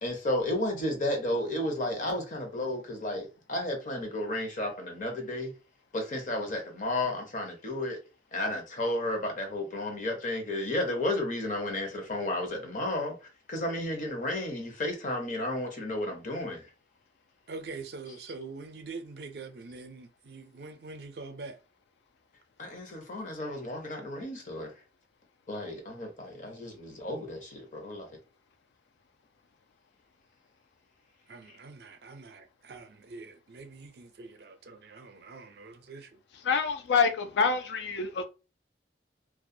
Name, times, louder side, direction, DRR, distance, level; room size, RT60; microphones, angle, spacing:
voice 1, 0.0-5.5 5.9-8.0 8.3-13.2 13.5-16.6 22.6-24.7 25.5-28.1, left 1 dB, 45° left, 0.7 m, -32 dB
voice 2, 17.5-21.6 31.3-36.1, right 3 dB, 65° right, 0.4 m, -44 dB
voice 3, 36.4-38.2, left 5 dB, 80° left, 0.4 m, -26 dB
2.3 x 2.1 x 2.6 m
head